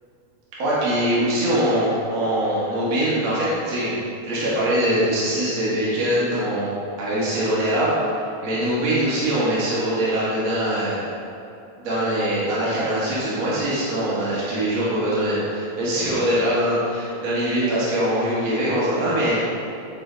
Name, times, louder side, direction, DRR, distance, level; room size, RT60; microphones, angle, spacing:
voice 1, 0.6-6.7 7.0-11.0 11.8-19.4, right 1 dB, 45° right, -9 dB, 2.3 m, -22 dB
10.5 x 4.2 x 3.8 m, 2.6 s
omnidirectional pair, 3.9 m